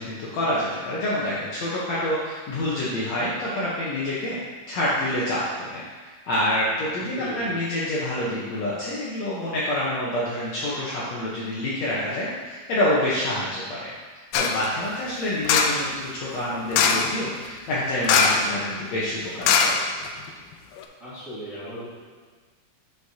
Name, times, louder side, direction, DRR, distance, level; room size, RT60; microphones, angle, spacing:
voice 1, 0.0-4.4 4.7-5.8 6.3-13.9 14.3-19.8, left 1 dB, 65° left, -7 dB, 1.8 m, -27 dB
voice 2, 7.1-7.5 21.0-21.9, right 1 dB, 30° right, -13 dB, 1.7 m, -36 dB
sound 1, 14.3-14.7 15.5-15.9 16.7-17.2 18.0-18.6 18.8-18.9 19.4-20.3 20.8-20.9, left 6 dB, 85° left, 2.2 m, -21 dB
8.1 x 6.4 x 2.8 m, 1.5 s
omnidirectional pair, 4.1 m